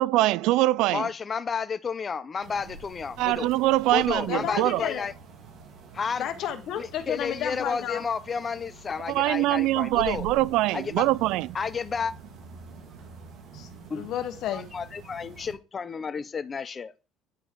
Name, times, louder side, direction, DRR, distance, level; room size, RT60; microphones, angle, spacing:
voice 1, 0.0-1.1 3.2-4.8 9.1-11.5, right 17 dB, 75° right, 0.3 m, -23 dB
voice 2, 0.9-3.5 3.9-5.1 5.9-6.3 6.8-10.3 10.7-11.0 11.5-12.1 13.9-14.0 14.5-16.9, left 5 dB, 25° left, 0.7 m, -31 dB
sound 1, 2.4-15.5, right 4 dB, 60° right, 2.8 m, -46 dB
voice 3, 4.3-5.1 6.2-8.0 13.5-14.7, left 10 dB, 60° left, 1.4 m, -32 dB
9.7 x 4.6 x 4.7 m
cardioid pair, 140°, 0 cm